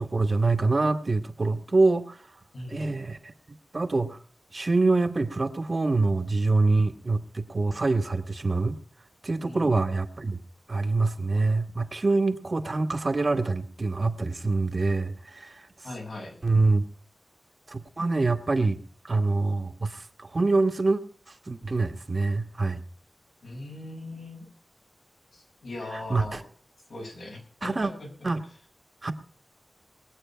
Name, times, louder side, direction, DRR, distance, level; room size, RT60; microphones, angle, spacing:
voice 1, 0.0-2.2 2.7-3.3 3.7-4.2 4.5-8.7 9.2-10.4 10.7-15.6 16.4-16.8 17.7-18.8 19.0-21.0 21.5-22.8 25.9-26.4 27.6-27.9 28.2-28.4 29.0-29.1, right 3 dB, 45° right, 7 dB, 1.3 m, -25 dB
voice 2, 2.5-2.9 9.4-9.7 15.8-16.4 23.4-24.5 25.3-26.4 26.9-28.3, left 2 dB, 90° left, -1 dB, 6.3 m, -40 dB
20.0 x 8.4 x 5.6 m, 0.43 s
wide cardioid pair, 85°, 0 cm